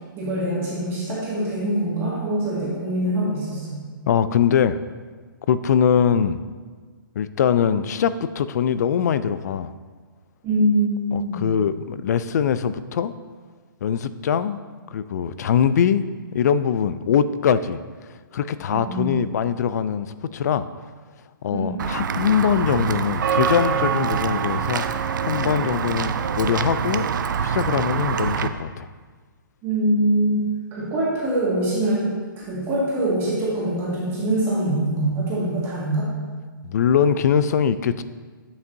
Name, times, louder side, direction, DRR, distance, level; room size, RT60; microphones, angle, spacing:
voice 1, 0.2-3.8 10.4-11.4 18.7-19.1 21.5-21.7 29.6-30.4 30.7-36.1, right 1 dB, 20° right, -7 dB, 1.8 m, -24 dB
voice 2, 4.1-4.8 5.5-6.4 7.2-9.7 11.1-13.1 13.8-14.6 14.9-16.0 16.3-17.8 18.3-20.7 21.4-27.1 27.4-28.9 36.6-38.0, left 8 dB, 50° left, 14 dB, 0.4 m, -22 dB
Walk footsteps / Bell, 21.8-28.5, right 7 dB, 60° right, 0.4 m, -25 dB
8.2 x 7.1 x 2.7 m, 1.5 s
hypercardioid pair, 150°, 12 cm